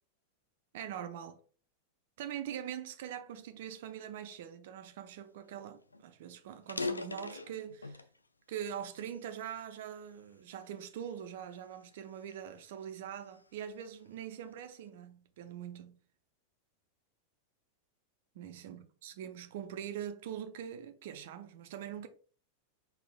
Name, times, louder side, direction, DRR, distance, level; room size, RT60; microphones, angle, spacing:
voice 1, 0.7-1.4 2.2-8.0 8.5-16.0 18.4-22.1, right 9 dB, 55° right, 0.6 m, -43 dB
sound 1, 5.5-5.6 5.9-6.0 6.5-8.2 8.7-10.0 10.6-10.8 11.5-13.5, left 3 dB, 80° left, 0.4 m, -41 dB
5.0 x 4.0 x 2.3 m
figure-of-eight pair, 90°, 0 cm